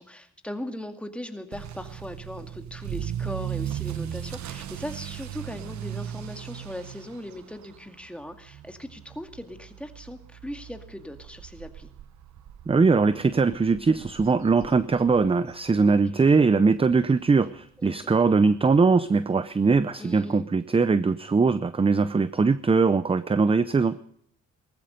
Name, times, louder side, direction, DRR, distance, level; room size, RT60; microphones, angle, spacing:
voice 1, 0.0-11.9 15.8-16.5 17.8-18.1 20.0-20.5, left 1 dB, 5° left, 6 dB, 2.2 m, -39 dB
Motor vehicle (road) / Accelerating revving vroom, 1.5-16.4 16.7-17.0 17.6-17.7 18.0-18.1 18.3-18.4 19.7-19.8, right 10 dB, 70° right, 1.2 m, -38 dB
voice 2, 12.7-24.0, right 4 dB, 20° right, 15 dB, 0.6 m, -21 dB
19.0 x 14.5 x 5.2 m, 0.68 s
cardioid pair, 90°, 30 cm